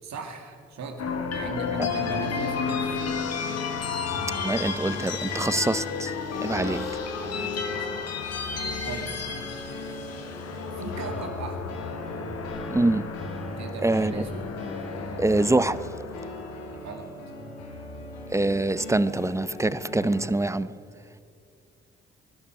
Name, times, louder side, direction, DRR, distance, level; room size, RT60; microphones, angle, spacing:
voice 1, 0.0-3.2 6.5-8.1 8.8-9.1 10.7-11.8 13.6-14.5 16.7-17.1, right 4 dB, 65° right, 2.5 m, -39 dB
sound 1, 1.0-17.2, left 6 dB, 60° left, 1.5 m, -33 dB
sound 2, 1.3-20.3, left 1 dB, 85° left, 2.7 m, -38 dB
voice 2, 4.4-6.1 6.4-6.8 12.7-13.1 13.8-14.2 15.2-15.8 18.3-20.7, right 2 dB, 10° right, 0.7 m, -24 dB
22.5 x 12.0 x 5.1 m
hypercardioid pair, 45°, 30 cm